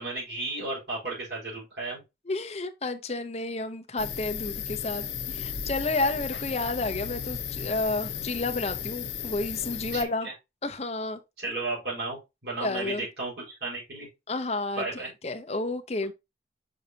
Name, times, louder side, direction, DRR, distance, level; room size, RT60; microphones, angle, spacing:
voice 1, 0.0-2.0 9.9-10.3 11.4-14.1 14.8-15.1, right 3 dB, 70° right, 4.6 m, -34 dB
voice 2, 2.3-10.3 10.6-11.2 12.6-13.1 14.3-16.1, left 2 dB, 35° left, 0.8 m, -31 dB
sound 1, 4.0-10.0, left 7 dB, 75° left, 0.9 m, -35 dB
6.6 x 5.4 x 2.8 m
head